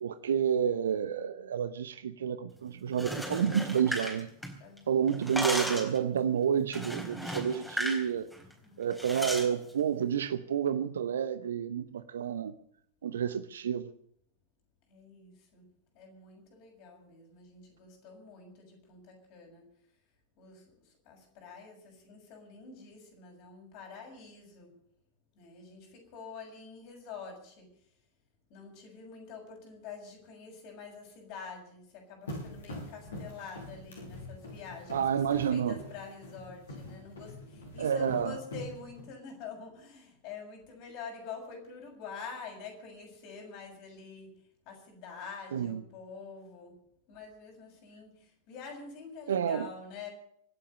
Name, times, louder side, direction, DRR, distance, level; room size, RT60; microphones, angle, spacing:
voice 1, 0.0-4.3 4.9-8.3 8.8-12.5 13.0-13.9 34.9-35.8 37.8-38.4 45.5-45.8 49.3-49.7, right 8 dB, 65° right, 0.8 m, -30 dB
sound 1, 2.9-4.8 5.1-6.0 6.7-8.0 8.3-8.5 9.0-9.5, equal, ahead, 4.1 m, -35 dB
voice 2, 14.9-15.6 15.9-19.7 20.4-20.6 21.0-24.7 25.4-27.7 28.5-35.0 35.3-44.3 44.6-46.7 47.1-50.1, left 5 dB, 45° left, 6.7 m, -46 dB
sound 2, 32.3-39.0, left 1 dB, 65° left, 7.8 m, -44 dB
25.5 x 8.7 x 6.5 m
figure-of-eight pair, 90°, 0 cm